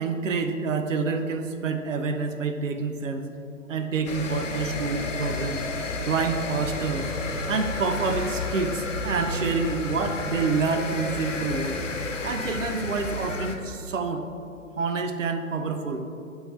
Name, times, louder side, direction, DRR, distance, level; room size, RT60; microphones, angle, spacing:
voice 1, 0.0-3.3 3.7-5.6 6.0-7.1 7.5-11.8 12.2-14.2 14.8-16.0, right 4 dB, 65° right, 6 dB, 0.7 m, -27 dB
sound 1, 4.1-13.6, left 3 dB, 65° left, 1.0 m, -31 dB
11.0 x 3.8 x 4.3 m, 2.6 s
figure-of-eight pair, 130°, 41 cm